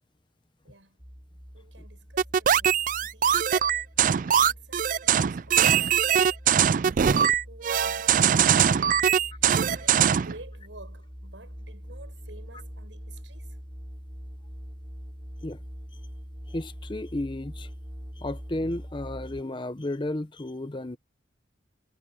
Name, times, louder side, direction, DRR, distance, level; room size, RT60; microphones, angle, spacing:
voice 1, 0.6-1.0 1.5-3.5 4.0-6.3 6.8-9.4 9.7-13.6, right 2 dB, 80° right, 8.0 m, -50 dB
sound 1, 1.0-19.4, equal, 20° right, 6.5 m, -43 dB
sound 2, 2.2-10.3, right 8 dB, 45° right, 0.3 m, -22 dB
voice 2, 16.5-17.7 18.2-21.0, left 1 dB, 25° left, 0.8 m, -33 dB
head